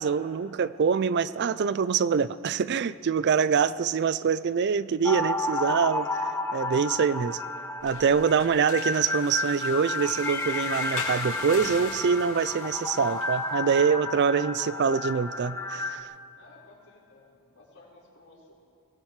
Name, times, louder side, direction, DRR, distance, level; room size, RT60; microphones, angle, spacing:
voice 1, 0.0-7.4 7.8-16.0, right 6 dB, 50° right, 16 dB, 0.4 m, -25 dB
sound 1, 5.0-16.0, left 2 dB, 10° left, 0.6 m, -31 dB
sound 2, 7.8-13.4, left 4 dB, 65° left, 2.6 m, -41 dB
voice 2, 16.3-18.5, left 2 dB, 85° left, -6 dB, 4.8 m, -55 dB
23.5 x 18.5 x 3.2 m, 2.8 s
head